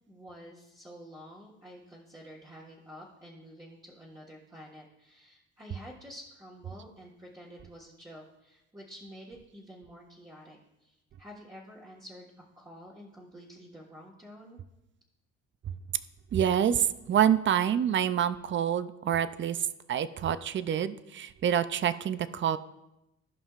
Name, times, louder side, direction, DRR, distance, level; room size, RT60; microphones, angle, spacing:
voice 1, 0.1-14.6, equal, 15° right, -6 dB, 1.5 m, -49 dB
voice 2, 16.3-19.6 19.9-22.6, right 9 dB, 40° right, 13 dB, 0.5 m, -27 dB
15.5 x 5.4 x 2.5 m, 0.92 s
cardioid pair, 90°, 30 cm